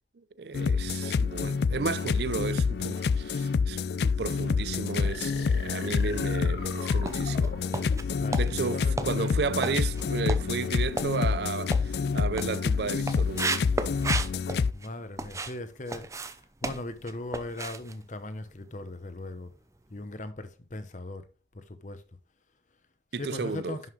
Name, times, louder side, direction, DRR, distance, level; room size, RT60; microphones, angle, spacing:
voice 1, 0.4-7.6 8.4-13.7 23.1-23.8, right 4 dB, 60° right, 0.5 m, -33 dB
sound 1, 0.5-14.7, left 5 dB, 60° left, 0.3 m, -28 dB
sound 2, 4.9-5.6 6.1-15.6 15.9-19.0 19.3-19.5 20.0-20.1, right 3 dB, 15° right, 0.6 m, -36 dB
sound 3, 5.1-8.6, left 3 dB, 80° left, 1.7 m, -43 dB
voice 2, 8.2-9.4 14.7-16.4 16.6-19.5 19.9-21.3 21.5-22.0 23.2-23.8, left 2 dB, 40° left, 0.9 m, -39 dB
11.0 x 5.6 x 3.2 m
head